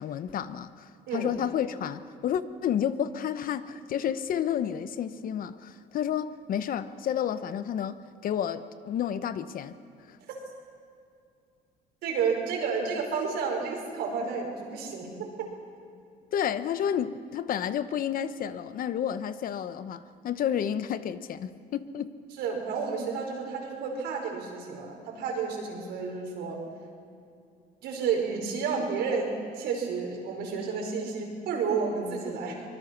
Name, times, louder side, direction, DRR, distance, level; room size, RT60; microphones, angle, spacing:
voice 1, 0.0-9.8 10.1-10.2 16.3-22.1, left 9 dB, 55° left, 0.9 m, -31 dB
voice 2, 12.0-15.1 22.4-26.6 27.8-32.6, right 5 dB, 80° right, 5.3 m, -31 dB
24.0 x 21.0 x 6.1 m
cardioid pair, 110°, 17 cm